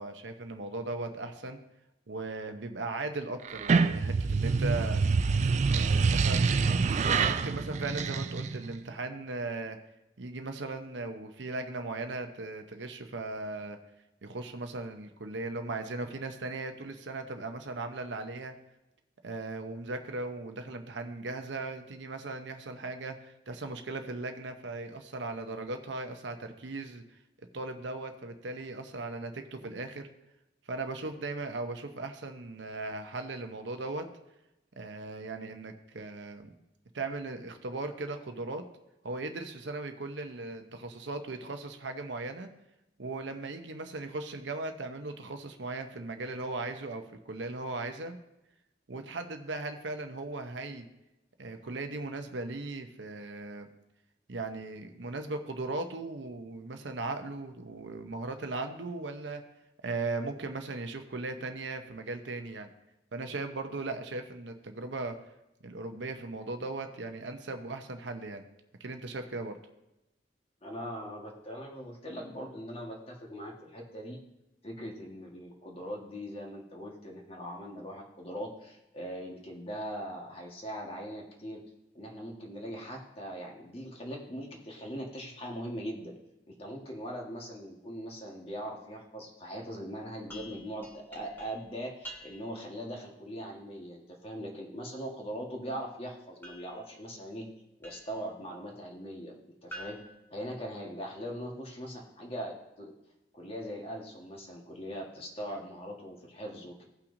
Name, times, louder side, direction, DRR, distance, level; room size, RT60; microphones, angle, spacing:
voice 1, 0.0-1.6 2.1-5.0 5.7-6.7 7.3-9.8 10.2-13.8 14.2-18.5 19.2-27.0 27.5-30.1 30.7-34.1 34.8-36.6 36.9-38.6 39.0-42.5 43.0-48.2 48.9-50.9 51.4-53.7 54.3-59.4 59.8-62.7 63.1-65.2 65.6-68.5 68.8-69.6, right 3 dB, 85° right, 7 dB, 0.8 m, -38 dB
sound 1, 3.4-8.8, right 4 dB, 40° right, 0.3 m, -26 dB
voice 2, 70.6-74.2 74.6-81.6 81.9-86.1 86.5-97.5 97.8-99.3 99.6-100.0 100.3-102.9 103.3-106.8, equal, 35° left, 0 dB, 1.5 m, -41 dB
sound 2, 90.3-92.7 96.4-98.3 99.7-101.2, right 1 dB, 10° left, 1.4 m, -49 dB
17.0 x 5.8 x 2.7 m, 0.93 s
head